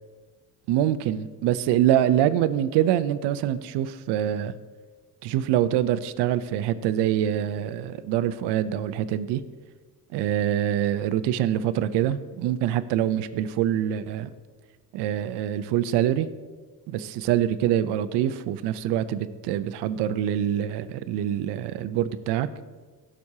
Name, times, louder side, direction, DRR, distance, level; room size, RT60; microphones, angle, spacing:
voice 1, 0.7-4.5 5.2-9.4 10.1-14.3 14.9-16.3 16.9-22.5, right 11 dB, 75° right, 12 dB, 0.6 m, -25 dB
16.0 x 6.2 x 2.8 m, 1.4 s
supercardioid pair, 80°, 41 cm